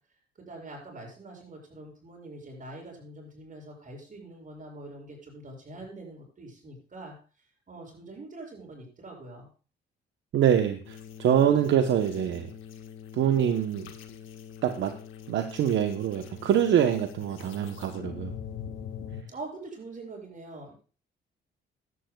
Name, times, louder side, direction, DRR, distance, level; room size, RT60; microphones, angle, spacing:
voice 1, 0.4-7.1 7.7-9.5 19.3-20.7, right 2 dB, 40° right, 1 dB, 6.8 m, -44 dB
voice 2, 10.3-12.5 13.1-13.9 14.6-15.0 15.3-18.3, right 9 dB, 70° right, 7 dB, 1.0 m, -25 dB
sound 1, 10.8-19.2, left 8 dB, 90° left, 1.5 m, -43 dB
16.0 x 11.5 x 2.3 m, 0.37 s
cardioid pair, 90°, 20 cm